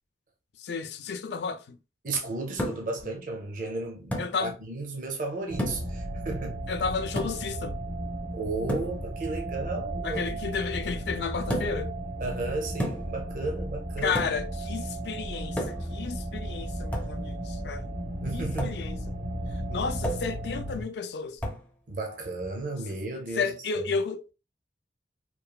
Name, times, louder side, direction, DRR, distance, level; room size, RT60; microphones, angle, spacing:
voice 1, 0.6-1.7 4.2-4.5 6.7-7.8 10.0-11.9 14.0-17.9 18.3-19.0 19.5-21.4 23.4-24.3, left 5 dB, 70° left, 0.4 m, -32 dB
voice 2, 2.0-6.6 8.3-10.2 10.5-10.6 12.2-14.3 18.2-18.7 21.9-24.0, right 3 dB, 45° right, 0.5 m, -34 dB
sound 1, 2.6-3.0 4.1-4.4 5.6-6.0 7.2-7.5 8.7-9.0 11.5-11.9 12.8-13.2 14.1-14.5 15.6-16.0 16.9-17.2 18.6-18.8 20.0-20.4 21.4-21.7, equal, 10° left, 0.4 m, -32 dB
sound 2, 5.5-20.8, right 1 dB, 85° right, 0.9 m, -35 dB
3.0 x 2.3 x 2.3 m
head